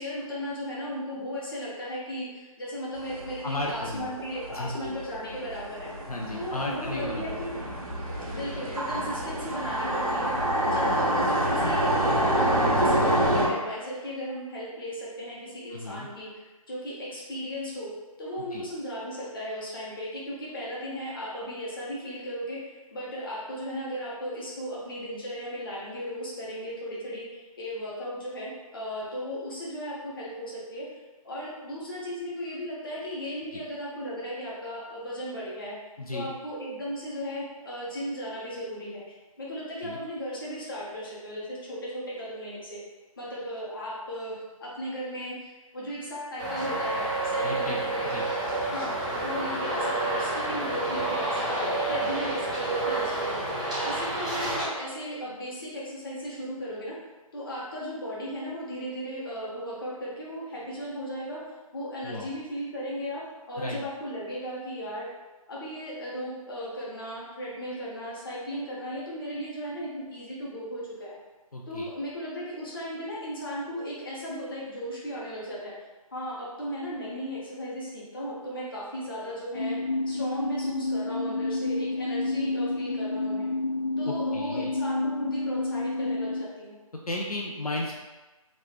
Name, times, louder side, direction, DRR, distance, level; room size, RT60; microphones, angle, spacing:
voice 1, 0.0-5.9 6.3-7.5 8.3-10.3 10.7-16.3 16.7-17.9 18.2-30.8 31.2-35.7 36.1-42.8 43.2-48.1 48.7-53.4 53.8-56.9 57.3-61.4 61.7-65.1 65.5-71.2 71.7-75.7 76.1-79.8 80.1-83.5 84.0-86.7, equal, 40° left, -6 dB, 1.0 m, -36 dB
sound 1, 3.0-13.5, right 1 dB, 90° right, 1.0 m, -27 dB
voice 2, 3.4-4.1 4.5-4.7 6.1-7.4 15.7-16.1 18.5-18.7 33.5-33.6 36.0-36.3 39.8-40.0 47.4-48.3 52.0-52.1 62.0-62.3 63.6-63.8 71.5-71.9 84.0-84.7 87.1-87.9, left 2 dB, 85° left, -2 dB, 0.6 m, -34 dB
Traffic noise roadway noise, 46.4-54.6, right 2 dB, 15° right, 0.4 m, -29 dB
sound 2, 79.6-86.4, left 2 dB, 60° left, 1.0 m, -29 dB
3.1 x 2.5 x 3.3 m, 1.2 s
figure-of-eight pair, 155°, 19 cm